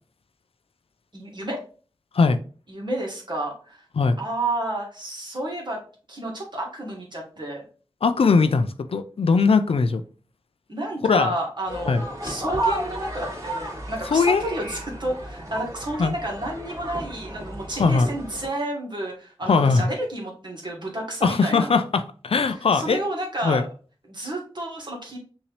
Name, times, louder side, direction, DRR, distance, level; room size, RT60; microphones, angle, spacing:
voice 1, 1.1-1.6 2.7-3.8 4.2-5.8 6.1-7.6 10.7-21.7 22.7-23.7 24.1-25.2, right 1 dB, 50° right, -1 dB, 1.7 m, -31 dB
voice 2, 8.0-10.0 11.0-11.3 11.8-12.0 14.1-14.4 16.0-16.1 17.8-18.1 19.5-19.9 21.2-23.0 23.4-23.6, left 4 dB, 85° left, 10 dB, 0.4 m, -20 dB
sound 1, 11.7-18.5, right 1 dB, 35° right, 2.3 m, -33 dB
5.7 x 2.7 x 3.1 m, 0.39 s
wide cardioid pair, 50°, 10 cm